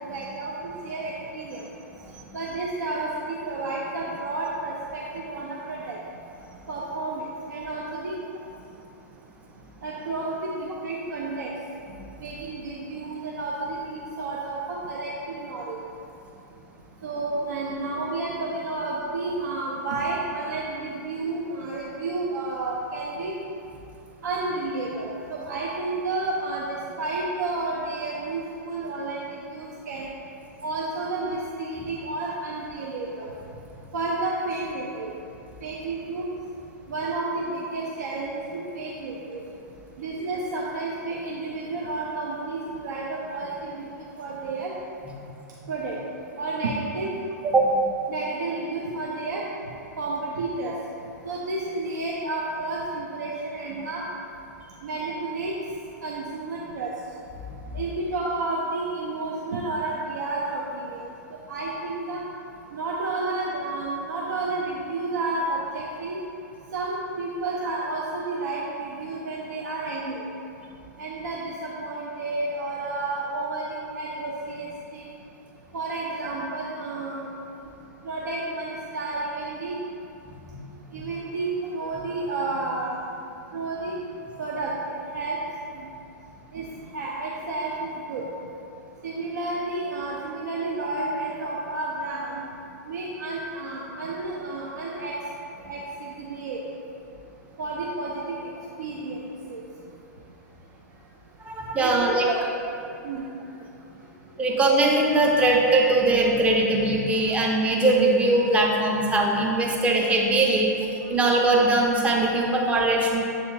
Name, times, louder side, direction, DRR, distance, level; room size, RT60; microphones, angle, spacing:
voice 1, 0.1-0.6 0.8-1.7 2.3-6.0 6.7-8.2 9.8-11.5 12.2-15.8 17.0-23.3 24.2-30.1 30.6-33.3 33.9-35.1 35.6-36.2 36.9-38.4 38.7-39.4 40.0-44.7 45.7-46.0 46.4-47.1 48.1-49.4 50.0-50.7 51.2-54.0 54.8-55.5 56.0-56.9 57.7-61.1 61.5-62.2 62.7-66.2 66.7-70.3 71.0-73.7 73.9-75.1 75.7-77.3 78.0-79.8 80.9-83.0 83.5-84.0 84.4-85.4 85.7-85.8 86.5-86.7 86.9-88.2 89.0-92.4 92.9-95.1 95.6-96.6 97.6-98.5 98.8-99.2 99.5-99.6 101.8-101.9 102.3-102.4 103.0-103.4, right 3 dB, 80° right, -4 dB, 0.5 m, -31 dB
voice 2, 47.4-47.8 80.5-80.6 80.9-81.0 101.4-102.3 104.4-113.2, right 2 dB, 15° right, -1 dB, 0.5 m, -21 dB
7.3 x 2.8 x 2.3 m, 2.7 s
hypercardioid pair, 120°, 9 cm